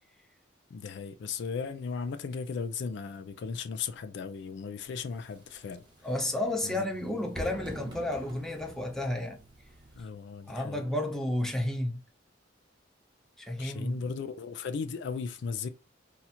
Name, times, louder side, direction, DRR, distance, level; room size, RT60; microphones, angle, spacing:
voice 1, 0.7-5.8 6.6-6.9 10.0-10.8 13.6-15.7, left 5 dB, 60° left, 0.3 m, -36 dB
sound 1, 4.9-10.0, equal, 25° right, 1.0 m, -46 dB
voice 2, 6.0-9.4 10.5-12.0 13.4-14.0, left 1 dB, 5° left, 0.6 m, -32 dB
2.8 x 2.4 x 4.1 m
head